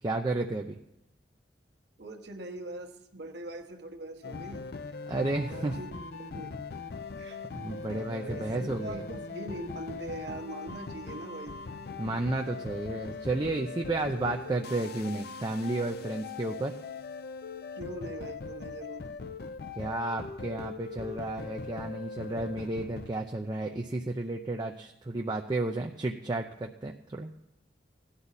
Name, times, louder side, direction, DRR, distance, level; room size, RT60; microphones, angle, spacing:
voice 1, 0.0-0.8 5.1-5.8 7.5-9.0 12.0-16.7 19.8-27.3, right 2 dB, 25° right, 2 dB, 0.5 m, -32 dB
voice 2, 2.0-5.0 5.5-6.5 7.2-7.6 8.2-11.6 17.8-19.1, right 1 dB, 65° right, 3 dB, 1.2 m, -42 dB
sound 1, 4.2-23.1, left 4 dB, 60° left, 0.6 m, -41 dB
17.5 x 11.5 x 4.1 m, 0.88 s
head